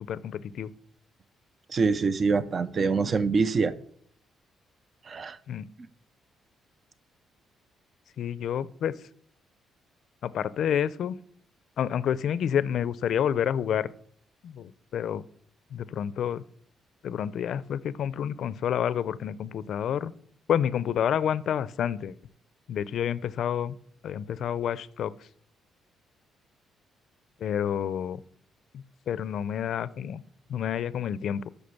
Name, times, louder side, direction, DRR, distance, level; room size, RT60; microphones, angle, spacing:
voice 1, 0.0-0.7 5.5-5.7 8.2-8.9 10.2-11.2 11.8-13.9 14.4-15.2 15.7-16.4 17.0-20.1 20.5-22.2 22.7-23.7 24.0-25.1 27.4-28.2 28.7-30.2 30.5-31.4, left 9 dB, 70° left, 0.5 m, -29 dB
voice 2, 1.7-3.8 5.0-5.4, right 4 dB, 40° right, 0.6 m, -25 dB
7.8 x 6.4 x 6.9 m
cardioid pair, 90°, 0 cm